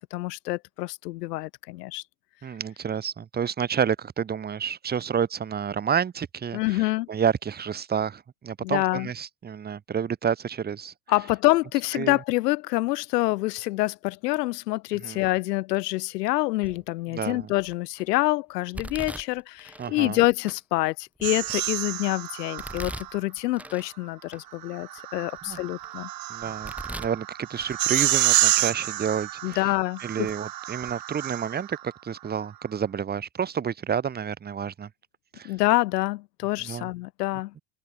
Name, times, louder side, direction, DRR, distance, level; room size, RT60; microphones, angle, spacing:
voice 1, 0.1-2.0 6.5-7.1 8.6-9.1 11.1-26.1 29.4-30.3 35.4-37.5, left 19 dB, 75° left, 2.0 m, -26 dB
voice 2, 2.4-10.9 11.9-12.2 15.0-15.2 17.1-17.5 19.8-20.2 25.5-25.6 26.3-29.7 30.0-34.9 35.3-35.5 36.6-36.9, right 7 dB, 20° right, 0.8 m, -29 dB
Domestic sounds home sounds, 16.6-17.0 17.6-18.0 18.7-19.9 20.5-20.6 21.2-21.9 22.6-23.9 24.3-24.4 25.0-25.9 26.4-27.2 27.5-28.3 28.5-28.7 29.5-29.6 30.3-30.4 30.7-30.9, right 1 dB, 5° right, 7.1 m, -41 dB
sound 1, 21.2-23.2 24.6-31.8, right 14 dB, 45° right, 1.7 m, -28 dB
open air
hypercardioid pair, 75°, 49 cm